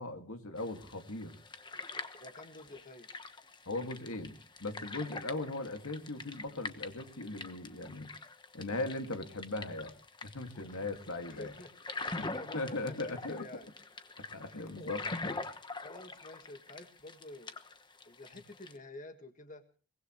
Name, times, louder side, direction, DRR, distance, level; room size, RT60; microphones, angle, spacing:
voice 1, 0.0-1.3 3.7-4.3 4.6-8.1 8.5-9.9 10.2-11.5 12.2-13.4 14.3-15.4, left 2 dB, 85° left, 6 dB, 2.1 m, -39 dB
sound 1, 0.6-18.8, left 3 dB, 20° left, 1.1 m, -45 dB
voice 2, 2.2-3.1 10.5-10.9 11.3-13.7 14.5-15.0 15.8-17.6 18.0-19.6, left 2 dB, 35° left, 6 dB, 1.6 m, -50 dB
23.0 x 20.0 x 3.1 m, 0.39 s
head